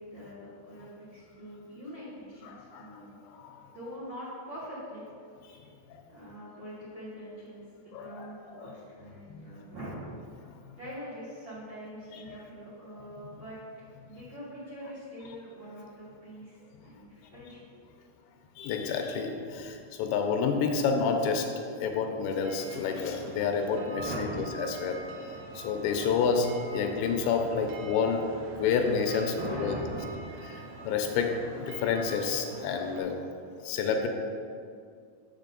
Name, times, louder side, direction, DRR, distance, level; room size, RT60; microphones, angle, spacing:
voice 1, 0.0-3.2 3.7-5.0 6.1-10.0 10.7-13.6 14.0-17.6 19.5-19.6 24.0-24.7 29.3-30.3, equal, 60° right, -11 dB, 1.6 m, -43 dB
voice 2, 2.4-2.9 3.3-3.6 5.9-6.0 7.9-8.3 8.5-8.7 9.3-9.5 10.5-10.6 12.1-12.4 18.6-21.5 21.8-25.0 25.6-29.8 30.8-33.3 33.6-34.1, left 5 dB, 85° left, 4 dB, 2.8 m, -29 dB
sound 1, 22.4-33.0, right 3 dB, 80° right, 1.9 m, -45 dB
7.5 x 7.4 x 3.9 m, 2.3 s
omnidirectional pair, 5.2 m